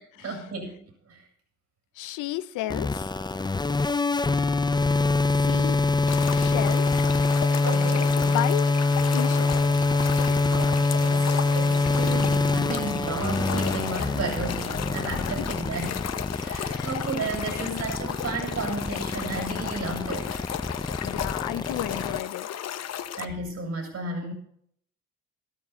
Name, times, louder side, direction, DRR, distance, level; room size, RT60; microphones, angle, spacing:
voice 1, 0.2-1.2 7.6-8.3 10.5-16.0 16.3-20.4 23.2-24.3, right 3 dB, 60° right, 7.0 m, -33 dB
voice 2, 2.0-3.1 5.3-5.8 6.3-7.0 8.2-8.7 9.1-9.6 15.2-15.5 16.7-17.0 17.5-17.9 21.0-22.5, left 15 dB, 90° left, 0.7 m, -33 dB
sound 1, 2.7-22.2, left 3 dB, 15° left, 0.6 m, -24 dB
sound 2, 6.1-23.2, left 10 dB, 60° left, 0.9 m, -35 dB
sound 3, 8.9-15.9, right 11 dB, 75° right, 1.4 m, -43 dB
13.0 x 13.0 x 4.3 m
cardioid pair, 90°, 30 cm